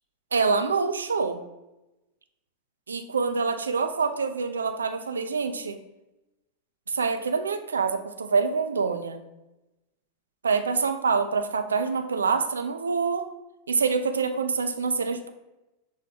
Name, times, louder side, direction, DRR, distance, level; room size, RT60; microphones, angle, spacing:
voice 1, 0.3-1.4 2.9-5.8 6.9-9.2 10.4-13.3 13.7-15.3, right 5 dB, 70° right, 7 dB, 0.4 m, -26 dB
5.9 x 2.2 x 3.6 m, 0.97 s
figure-of-eight pair, 90°, 0 cm